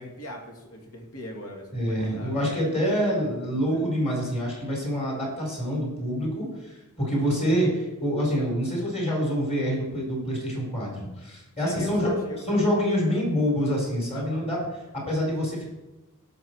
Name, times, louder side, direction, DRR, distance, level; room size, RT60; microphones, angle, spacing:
voice 1, 0.0-2.6 3.1-3.9 11.6-12.6 14.1-14.5, left 1 dB, 75° left, 1 dB, 2.4 m, -40 dB
voice 2, 1.7-12.1 12.5-14.6 14.9-15.7, equal, 30° left, -2 dB, 4.4 m, -26 dB
17.0 x 6.8 x 4.7 m, 1.0 s
head